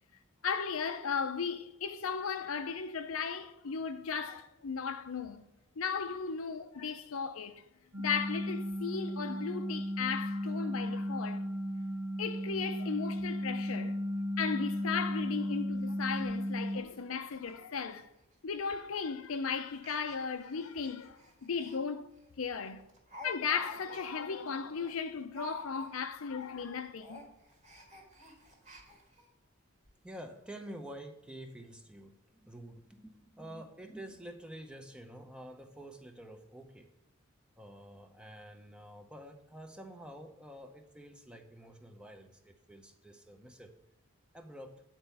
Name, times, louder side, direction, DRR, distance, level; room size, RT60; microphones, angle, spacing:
voice 1, 0.4-5.4 5.8-7.6 8.0-11.4 12.2-14.0 14.4-18.1 18.4-22.8 23.2-27.2, left 6 dB, 80° left, 0.6 m, -36 dB
sound 1, 7.9-16.8, equal, 65° right, 1.2 m, -35 dB
Speech, 15.4-15.5 15.9-16.0 16.3-16.4 16.9-17.0 17.3-17.6 17.8-18.0 18.7-19.0 19.7-21.8 22.2-22.3 22.6-26.2 26.5-26.7 27.0-29.3 29.8-29.9 30.2-30.3, left 1 dB, 35° right, 1.7 m, -51 dB
voice 2, 30.0-36.9 37.6-43.7 44.3-44.8, right 1 dB, 5° right, 0.7 m, -48 dB
8.8 x 4.4 x 6.9 m
head